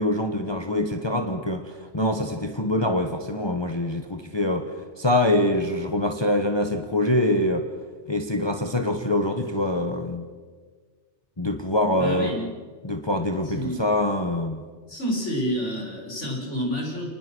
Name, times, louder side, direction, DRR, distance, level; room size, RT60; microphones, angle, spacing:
voice 1, 0.0-4.7 5.0-7.7 8.1-10.3 11.4-12.3 12.8-14.6, left 1 dB, 25° left, 5 dB, 1.3 m, -24 dB
voice 2, 12.0-12.5 13.5-13.8 14.9-17.1, equal, 80° left, -1 dB, 6.3 m, -28 dB
30.0 x 20.0 x 6.4 m, 1.5 s
omnidirectional pair, 1.2 m